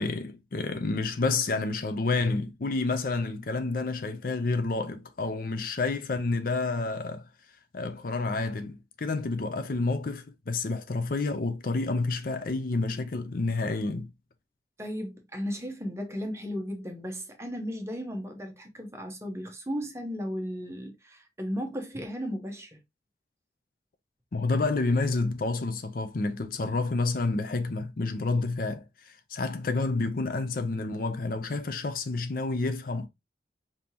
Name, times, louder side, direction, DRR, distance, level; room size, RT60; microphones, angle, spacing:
voice 1, 0.0-7.3 7.7-14.1 24.3-33.1, left 3 dB, 50° left, 0.5 m, -29 dB
voice 2, 14.8-22.8, equal, 15° right, 0.9 m, -35 dB
5.2 x 2.8 x 2.9 m
head